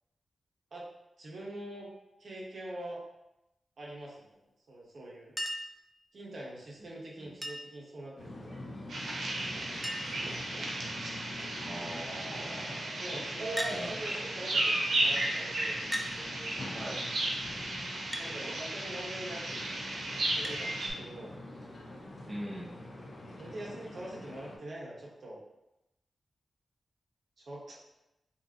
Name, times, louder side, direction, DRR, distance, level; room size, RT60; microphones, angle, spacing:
voice 1, 1.2-1.9 2.2-3.0 3.8-4.3 4.7-5.3 6.1-8.6 13.0-15.8 18.2-19.6 20.2-21.4 23.4-25.4 27.4-27.8, right 1 dB, 65° right, -4 dB, 1.1 m, -43 dB
Chink clink, 5.4-5.8 7.4-7.8 9.2-9.3 9.5-9.6 9.8-10.3 11.0-11.4 13.6-13.8 14.9-15.0 15.9-16.1 18.1-18.3 20.4-20.6 22.0-22.1, equal, 5° left, 0.5 m, -37 dB
sound 1, 8.2-24.6, left 1 dB, 70° left, 1.1 m, -46 dB
sound 2, 8.9-20.9, right 1 dB, 85° right, 0.8 m, -34 dB
voice 2, 11.5-12.9 13.7-13.9 16.7-17.1 22.3-22.8, right 1 dB, 25° right, -5 dB, 0.9 m, -42 dB
5.6 x 2.5 x 2.8 m, 0.89 s
wide cardioid pair, 85°, 0 cm